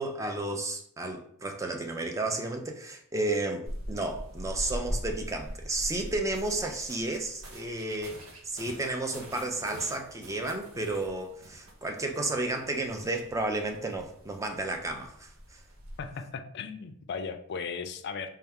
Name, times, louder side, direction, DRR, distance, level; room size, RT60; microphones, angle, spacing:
voice 1, 0.0-15.6, right 2 dB, 15° right, 0.4 m, -32 dB
sound 1, 3.7-16.1, equal, 65° right, 0.8 m, -42 dB
voice 2, 16.0-18.3, left 5 dB, 50° left, 0.4 m, -37 dB
4.3 x 2.3 x 3.4 m
head